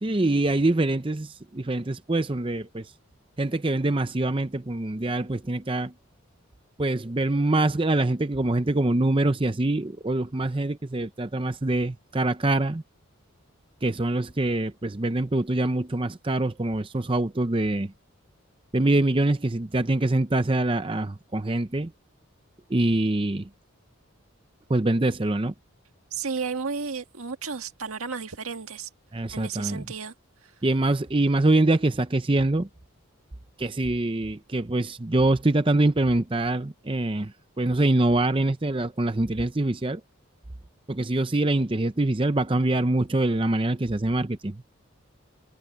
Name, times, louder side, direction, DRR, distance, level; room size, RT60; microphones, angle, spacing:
voice 1, 0.0-2.9 3.4-5.9 6.8-12.8 13.8-17.9 18.7-21.9 22.7-23.5 24.7-25.5 29.1-29.9 30.6-32.7 33.6-40.0 40.9-44.6, right 2 dB, 25° right, 0.6 m, -24 dB
voice 2, 26.1-28.9 29.3-30.1, right 5 dB, 85° right, 1.7 m, -33 dB
head